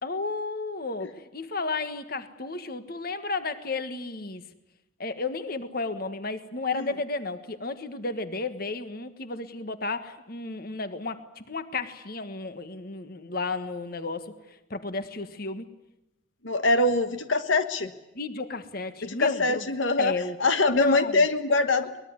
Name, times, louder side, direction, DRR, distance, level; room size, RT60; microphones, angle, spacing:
voice 1, 0.0-4.4 5.0-14.3 14.7-15.6 18.1-19.6 20.0-20.4 20.7-21.2, left 3 dB, 50° left, 10 dB, 1.6 m, -33 dB
voice 2, 16.4-17.9 19.0-20.1 20.4-22.0, left 2 dB, 80° left, 9 dB, 1.5 m, -23 dB
23.5 x 21.0 x 9.7 m, 0.90 s
head